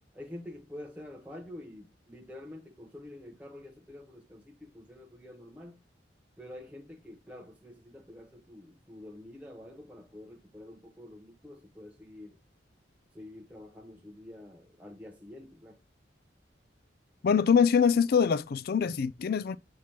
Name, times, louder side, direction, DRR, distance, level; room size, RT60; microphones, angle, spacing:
voice 1, 0.1-5.8 6.4-12.4 13.1-15.8, left 1 dB, 10° right, 0.8 m, -47 dB
voice 2, 17.2-19.6, left 6 dB, 55° left, 0.3 m, -24 dB
7.5 x 3.0 x 4.3 m
head